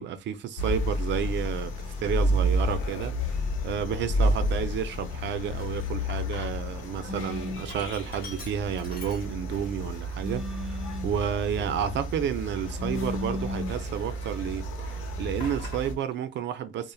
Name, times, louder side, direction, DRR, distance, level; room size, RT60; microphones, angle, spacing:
voice 1, 0.0-16.9, right 9 dB, 65° right, 0.4 m, -31 dB
sound 1, 0.6-16.0, equal, 80° left, 0.7 m, -31 dB
Sink (filling or washing), 1.6-1.7 2.4-2.9 3.3-3.4 3.7-6.9 7.2-9.7 10.2-10.3 10.9-13.5 13.8-14.6 14.8-16.2, left 4 dB, 50° left, 1.1 m, -48 dB
sound 2, 7.1-7.7 10.2-11.2 12.8-13.8, left 2 dB, ahead, 0.6 m, -34 dB
3.1 x 2.0 x 2.3 m
cardioid pair, 90°, 20 cm